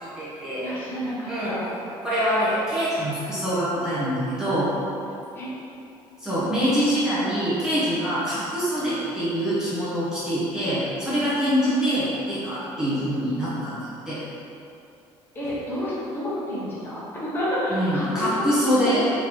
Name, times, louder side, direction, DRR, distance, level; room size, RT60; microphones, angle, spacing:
voice 1, 0.0-0.7 1.3-1.6 2.0-4.7 6.2-14.2 17.7-19.0, equal, 5° right, -11 dB, 1.0 m, -25 dB
voice 2, 0.6-1.7 5.3-5.5 11.6-11.8 12.8-13.1 15.3-19.0, left 1 dB, 20° left, -9 dB, 1.1 m, -30 dB
4.5 x 3.8 x 3.1 m, 2.8 s
cardioid pair, 160°, 10 cm